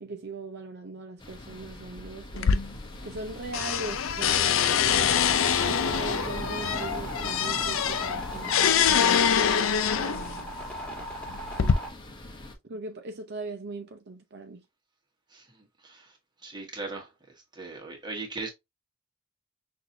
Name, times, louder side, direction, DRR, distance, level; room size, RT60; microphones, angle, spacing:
voice 1, 0.0-2.6 3.0-5.2 5.6-9.4 9.9-10.5 11.6-11.8 12.7-14.6, right 3 dB, 55° right, 0.6 m, -40 dB
sound 1, 1.2-12.5, left 1 dB, 20° left, 0.9 m, -41 dB
sound 2, 2.4-3.3 3.5-10.4 11.1-11.7, left 8 dB, 70° left, 0.5 m, -25 dB
sound 3, 5.1-11.9, right 1 dB, 5° left, 1.7 m, -39 dB
voice 2, 16.4-17.1 17.5-18.5, right 3 dB, 20° right, 1.4 m, -38 dB
5.9 x 2.7 x 2.7 m
head